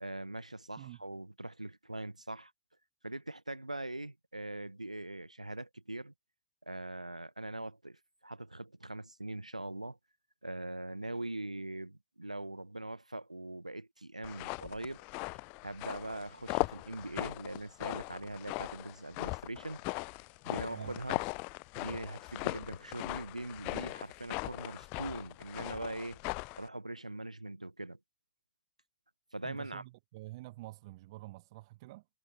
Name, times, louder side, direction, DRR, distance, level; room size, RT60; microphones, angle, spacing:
voice 1, 0.0-2.5 3.0-6.1 6.7-10.0 10.4-15.0 15.6-19.8 20.4-21.2 21.7-26.2 26.5-28.0 29.3-29.8, right 2 dB, 90° right, 0.8 m, -42 dB
sound 1, 14.2-26.7, left 32 dB, 45° left, 0.4 m, -39 dB
voice 2, 20.7-21.0 24.1-24.2 29.4-32.0, right 19 dB, 55° right, 1.2 m, -48 dB
figure-of-eight pair, 90°, 4 cm